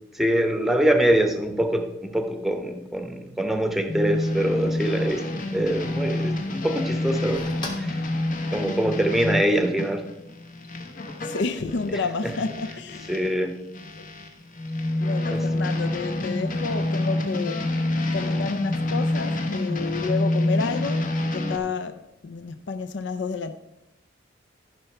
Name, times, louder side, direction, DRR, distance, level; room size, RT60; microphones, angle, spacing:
voice 1, 0.1-5.2 5.5-7.4 7.8-8.1 8.5-10.1 11.9-12.3 13.1-13.6 15.3-15.5, right 1 dB, ahead, 0.8 m, -24 dB
sound 1, 3.9-13.3 13.7-21.6, left 1 dB, 40° left, 1.0 m, -27 dB
sound 2, 4.1-9.0, left 1 dB, 25° left, 1.3 m, -44 dB
voice 2, 11.2-13.1 14.0-14.1 15.0-17.8 18.1-23.5, left 4 dB, 60° left, 0.4 m, -30 dB
13.5 x 5.7 x 4.4 m
head